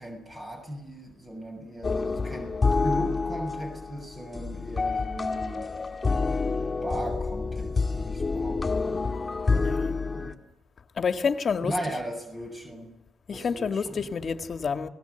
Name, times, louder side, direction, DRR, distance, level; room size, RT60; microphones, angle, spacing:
voice 1, 0.0-5.7 6.8-9.1 10.0-10.3 11.6-12.9 13.3-14.1, right 1 dB, 25° right, 6.7 m, -37 dB
sound 1, 1.8-10.3, left 4 dB, 25° left, 2.3 m, -28 dB
voice 2, 9.5-10.0 11.0-11.7 13.3-14.9, left 6 dB, 45° left, 1.9 m, -28 dB
29.0 x 18.5 x 8.2 m
cardioid pair, 90°, 0 cm